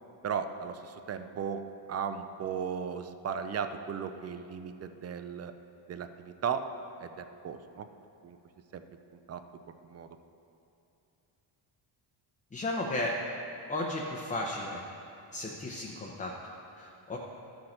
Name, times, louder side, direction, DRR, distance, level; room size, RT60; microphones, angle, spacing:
voice 1, 0.2-5.5 5.9-6.7 7.0-7.9 8.2-8.4 8.7-8.8 9.1-9.4 9.8-10.2, right 7 dB, 35° right, 9 dB, 0.4 m, -36 dB
voice 2, 12.5-13.2 13.7-14.8 15.3-17.2, left 1 dB, 15° left, -2 dB, 0.6 m, -34 dB
13.0 x 6.5 x 4.3 m, 2.9 s
cardioid pair, 150°, 47 cm